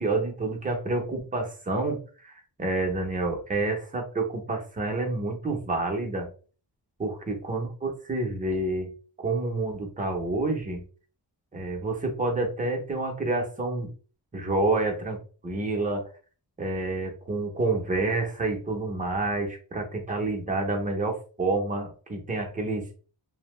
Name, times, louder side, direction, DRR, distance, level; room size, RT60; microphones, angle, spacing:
voice 1, 0.0-6.3 7.0-8.9 9.2-10.8 11.5-13.9 14.3-15.2 15.4-16.1 16.6-22.8, right 2 dB, 20° right, 1 dB, 0.6 m, -28 dB
2.6 x 2.0 x 3.0 m, 0.37 s
wide cardioid pair, 165°, 42 cm